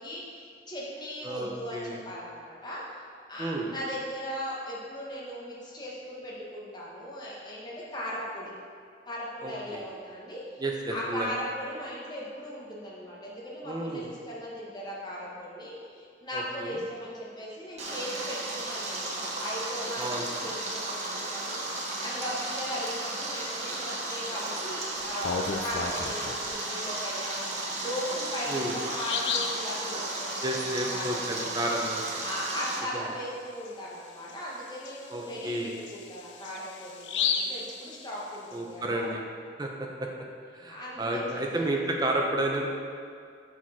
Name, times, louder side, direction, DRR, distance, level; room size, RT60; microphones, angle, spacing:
voice 1, 0.0-3.0 3.3-8.5 9.1-10.6 10.9-30.4 30.9-31.6 32.2-39.2 40.7-41.6, equal, 25° left, -5 dB, 1.3 m, -38 dB
voice 2, 1.2-2.0 3.4-3.7 9.4-9.8 10.6-11.3 13.6-14.1 16.3-16.8 20.0-20.3 28.5-28.7 30.4-32.0 32.9-33.1 35.1-35.7 38.5-39.2 39.6-40.1 40.5-42.7, right 1 dB, 25° right, 0 dB, 0.9 m, -31 dB
Stream, 17.8-32.8, right 2 dB, 40° right, 1.2 m, -34 dB
Bird vocalization bird call bird song, 25.0-26.5 28.0-28.1 28.5-28.6 28.9-29.7 33.1-33.3 33.7-33.8 34.3-38.5, left 6 dB, 75° left, 0.6 m, -33 dB
7.2 x 6.2 x 4.3 m, 2.2 s
head